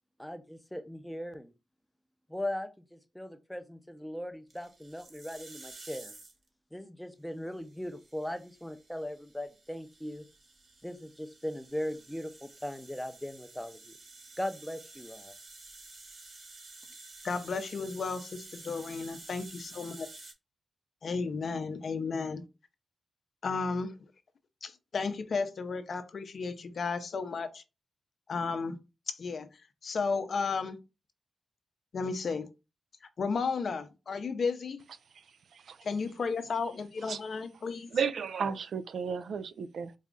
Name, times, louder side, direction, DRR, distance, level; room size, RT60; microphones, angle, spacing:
voice 1, 0.2-1.5 2.3-6.1 6.7-10.3 10.8-14.0 14.4-15.3, left 1 dB, 5° left, 0.6 m, -39 dB
sound 1, 4.5-6.5 7.5-20.3, right 3 dB, 45° right, 1.3 m, -51 dB
voice 2, 17.2-20.1 21.0-22.4 23.4-23.9 24.6-27.6 28.3-28.8 29.1-29.5 29.8-30.8 31.9-32.5 33.2-34.8 35.8-37.9, left 4 dB, 60° left, 0.6 m, -33 dB
voice 3, 35.1-35.9 37.0-37.2 37.9-39.9, right 6 dB, 70° right, 0.3 m, -34 dB
4.1 x 2.4 x 3.6 m
wide cardioid pair, 105°, 0 cm